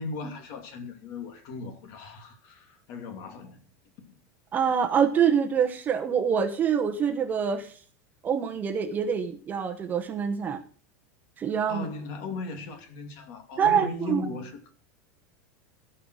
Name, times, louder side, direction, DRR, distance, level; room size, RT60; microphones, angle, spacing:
voice 1, 0.0-3.6 4.0-4.2 11.7-14.7, left 3 dB, 45° left, 2.7 m, -37 dB
voice 2, 4.5-7.8 8.2-10.6 11.4-11.8 13.6-14.3, right 7 dB, 20° right, 1.1 m, -25 dB
16.5 x 5.5 x 6.3 m
supercardioid pair, 165°, 8 cm